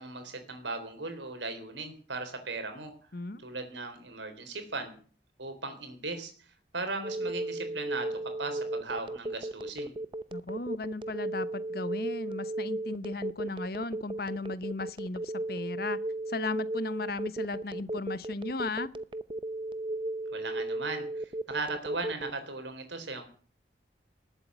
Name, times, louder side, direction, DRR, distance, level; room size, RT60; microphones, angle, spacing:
voice 1, 0.0-2.9 3.4-5.0 5.4-6.3 6.7-9.9 20.3-23.3, right 3 dB, 85° right, 7 dB, 3.8 m, -37 dB
Telephone, 7.0-22.3, right 2 dB, 30° right, 0.7 m, -35 dB
voice 2, 10.3-16.0 16.3-18.9, left 3 dB, 55° left, 15 dB, 1.0 m, -36 dB
19.0 x 8.3 x 8.4 m, 0.43 s
head